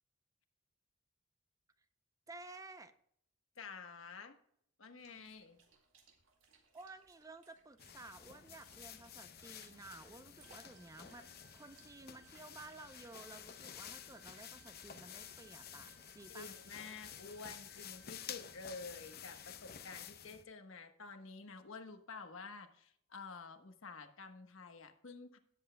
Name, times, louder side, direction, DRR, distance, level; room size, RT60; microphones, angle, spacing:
voice 1, 2.3-3.0 6.7-11.3 11.5-16.5, right 2 dB, 15° right, 11 dB, 0.6 m, -54 dB
voice 2, 3.6-4.4 4.8-5.6 16.3-25.4, left 4 dB, 85° left, 7 dB, 1.2 m, -50 dB
sound 1, 5.0-18.5, right 5 dB, 80° right, 2.2 m, -69 dB
sound 2, 7.8-20.4, left 9 dB, 50° left, 0.7 m, -52 dB
sound 3, 10.4-19.4, right 4 dB, 60° right, 1.5 m, -67 dB
17.5 x 8.0 x 2.2 m, 0.71 s
head